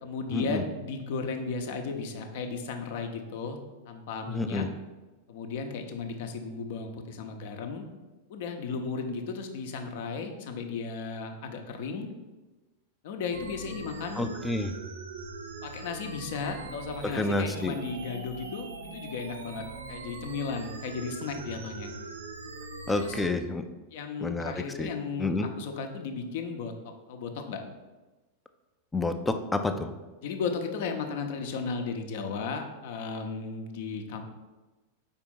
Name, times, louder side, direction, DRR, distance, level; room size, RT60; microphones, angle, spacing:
voice 1, 0.0-3.6 3.9-4.6 5.3-7.8 8.3-12.1 13.0-14.3 15.6-21.9 23.0-23.2 23.9-26.7 27.1-27.6 30.2-34.2, left 5 dB, 50° left, 5 dB, 0.8 m, -35 dB
voice 2, 4.3-4.7 14.2-14.7 17.1-17.8 22.9-23.6 24.2-24.5 24.8-24.9 25.2-25.5 28.9-29.9, left 2 dB, 10° left, 8 dB, 0.5 m, -29 dB
sound 1, 13.3-23.3, right 3 dB, 70° right, 0.7 m, -41 dB
5.1 x 4.5 x 5.4 m, 1.2 s
figure-of-eight pair, 90°, 0 cm